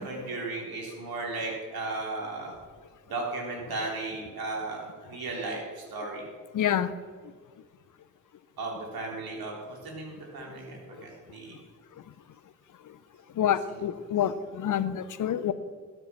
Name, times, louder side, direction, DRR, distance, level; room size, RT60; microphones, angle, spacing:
voice 1, 0.0-2.6 3.1-6.2 8.6-11.6 13.7-13.8, right 3 dB, 55° right, -1 dB, 3.6 m, -35 dB
voice 2, 6.5-6.9 13.4-15.5, left 10 dB, 50° left, 14 dB, 0.9 m, -27 dB
12.0 x 7.9 x 5.9 m, 1.5 s
hypercardioid pair, 45°, 42 cm